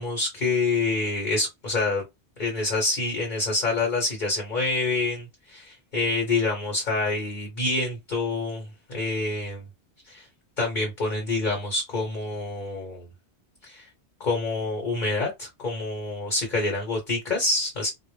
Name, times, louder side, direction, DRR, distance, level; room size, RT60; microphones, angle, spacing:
voice 1, 0.0-2.0 2.4-9.7 10.0-10.3 10.6-13.1 13.6-13.9 14.2-17.9, left 3 dB, 45° left, 1.0 m, -27 dB
2.1 x 2.0 x 3.1 m
omnidirectional pair, 1.2 m